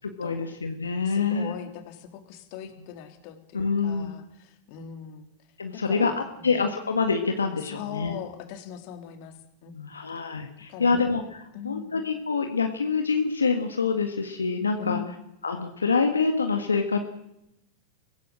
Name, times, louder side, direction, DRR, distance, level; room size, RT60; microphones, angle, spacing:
voice 1, 0.0-1.5 3.5-4.1 5.6-6.1 6.4-8.2 9.7-15.0 15.4-17.0, left 4 dB, 90° left, 5 dB, 1.8 m, -26 dB
voice 2, 1.0-5.3 5.7-6.6 7.6-9.8 10.7-11.0 11.5-11.9 14.8-15.1, left 10 dB, 55° left, 7 dB, 3.5 m, -40 dB
24.5 x 17.0 x 7.7 m, 0.84 s
hypercardioid pair, 95°, 0 cm